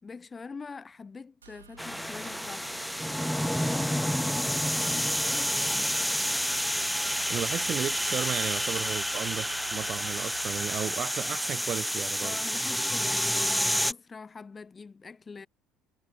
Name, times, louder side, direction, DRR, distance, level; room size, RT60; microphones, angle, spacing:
voice 1, 0.0-2.8 3.4-6.2 12.2-15.5, left 4 dB, 25° left, 3.5 m, -44 dB
sound 1, 1.4-10.9, right 8 dB, 85° right, 1.9 m, -50 dB
sound 2, 1.8-13.9, equal, ahead, 0.6 m, -29 dB
voice 2, 7.3-12.4, right 10 dB, 45° right, 1.0 m, -34 dB
hypercardioid pair, 60°, 0 cm